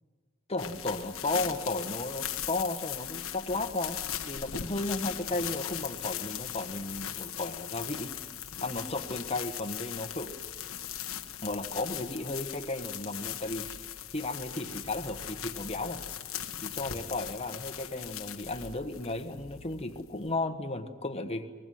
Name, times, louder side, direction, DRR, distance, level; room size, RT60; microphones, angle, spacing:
voice 1, 0.5-8.1 8.6-10.3 11.4-13.7 14.1-16.0 16.6-21.5, left 2 dB, 30° left, 7 dB, 1.4 m, -34 dB
sound 1, 0.6-20.3, left 10 dB, 85° left, 1.4 m, -39 dB
24.5 x 19.5 x 9.3 m, 1.4 s
head